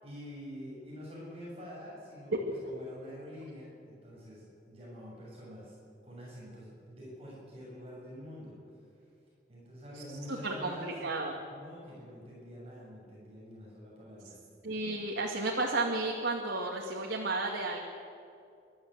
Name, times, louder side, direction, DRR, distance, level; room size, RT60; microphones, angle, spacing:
voice 1, 0.0-2.3 2.7-5.8 6.0-8.6 9.5-10.9 11.5-14.4, equal, 35° right, -5 dB, 7.4 m, -47 dB
voice 2, 9.9-11.4 14.6-17.8, right 2 dB, 90° right, -1 dB, 2.2 m, -33 dB
28.0 x 12.5 x 8.1 m, 2.4 s
head